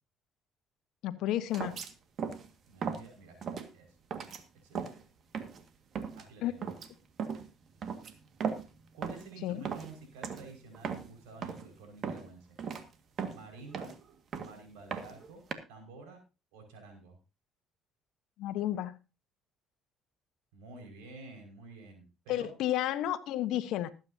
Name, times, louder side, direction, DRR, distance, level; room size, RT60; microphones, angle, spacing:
voice 1, 1.0-1.8 6.4-6.5 9.4-9.6 18.4-19.0 22.3-23.9, left 13 dB, 70° left, 12 dB, 1.1 m, -32 dB
sound 1, 1.5-1.9 2.2-2.5 2.8-3.1 3.4-3.7 4.1-4.4 4.7-5.0 5.3-5.6 6.0-6.2 6.6-6.9 7.2-7.5 7.8-8.7 9.0-9.3 9.6-10.0 10.2-10.5 10.7-11.1 11.4-11.7 12.0-12.3 12.6-12.8 13.2-14.0 14.3-14.6 14.9-15.5, right 6 dB, 55° right, 1.9 m, -37 dB
voice 2, 2.7-3.4 3.7-4.0 4.6-5.0 6.1-6.7 8.9-12.6 13.3-13.9 14.4-15.4 15.7-16.2 16.5-17.2 20.5-22.5, right 3 dB, 85° right, 4 dB, 5.5 m, -50 dB
20.0 x 8.8 x 2.8 m, 0.30 s
supercardioid pair, 65°, 0 cm